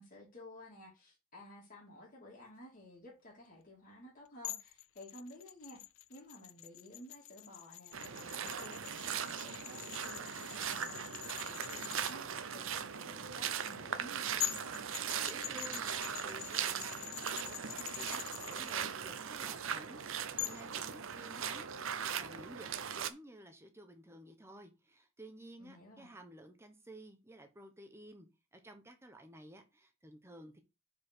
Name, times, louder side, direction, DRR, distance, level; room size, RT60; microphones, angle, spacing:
voice 1, 0.0-5.8 6.1-14.8 25.6-26.1, left 1 dB, 40° left, 2.5 m, -54 dB
sound 1, 4.4-12.1 14.0-14.1 14.4-18.7 20.4-20.7, left 15 dB, 65° left, 0.4 m, -44 dB
sound 2, 7.9-23.1, right 8 dB, 60° right, 0.7 m, -39 dB
voice 2, 15.2-21.9 22.2-22.7 22.9-30.6, right 1 dB, 10° right, 0.9 m, -54 dB
5.1 x 4.7 x 6.1 m
head